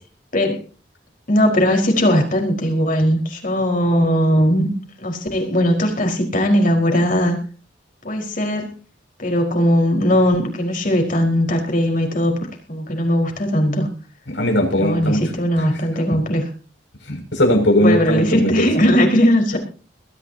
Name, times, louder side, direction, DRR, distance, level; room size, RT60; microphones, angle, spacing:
voice 1, 1.3-4.7 5.0-7.4 8.0-8.7 9.2-12.4 12.7-13.9 14.8-16.5 17.8-19.6, equal, 50° left, 2 dB, 4.8 m, -18 dB
voice 2, 14.3-15.2 17.1-18.7, left 1 dB, 80° left, 3 dB, 6.7 m, -18 dB
22.0 x 14.0 x 2.9 m, 0.36 s
head